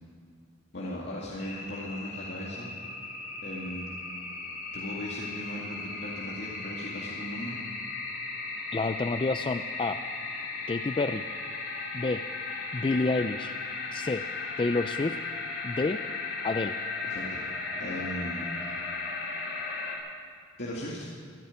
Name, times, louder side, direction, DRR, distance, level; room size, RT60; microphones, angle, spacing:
voice 1, 0.7-2.7 3.4-3.9 4.7-7.6 17.0-17.4 17.7-18.5 20.6-21.1, left 1 dB, 60° left, -5 dB, 2.1 m, -37 dB
sound 1, 1.4-20.0, left 3 dB, 90° left, 3.2 m, -36 dB
voice 2, 8.7-10.0 10.7-11.2 11.9-12.2 12.7-13.5 13.9-14.2 14.6-15.2 15.6-16.0 16.4-16.7, left 3 dB, 25° left, 9 dB, 0.4 m, -28 dB
15.5 x 9.4 x 9.7 m, 2.1 s
head